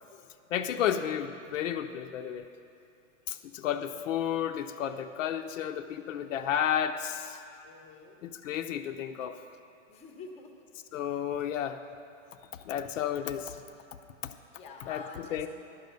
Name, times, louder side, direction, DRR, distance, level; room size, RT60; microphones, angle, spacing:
voice 1, 0.5-2.5 3.3-7.4 8.2-9.4 10.9-11.8 12.5-13.6 14.2-14.3 14.9-15.0 15.3-15.5, left 9 dB, 75° left, 8 dB, 0.6 m, -32 dB
voice 2, 7.6-8.2 9.9-10.5 11.4-11.5 14.5-15.5, left 4 dB, 15° left, 3 dB, 0.7 m, -47 dB
11.0 x 5.3 x 6.8 m, 2.6 s
hypercardioid pair, 150°, 38 cm